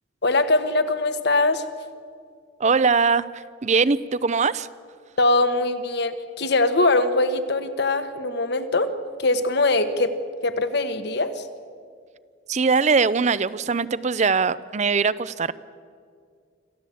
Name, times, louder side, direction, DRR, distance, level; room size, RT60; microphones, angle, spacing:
voice 1, 0.2-1.6 5.2-8.9 9.2-10.2 10.4-11.4, left 2 dB, 60° left, 10 dB, 1.4 m, -22 dB
voice 2, 2.6-4.7 12.5-15.5, right 5 dB, 35° right, 17 dB, 0.6 m, -21 dB
26.5 x 14.5 x 8.5 m, 2.2 s
head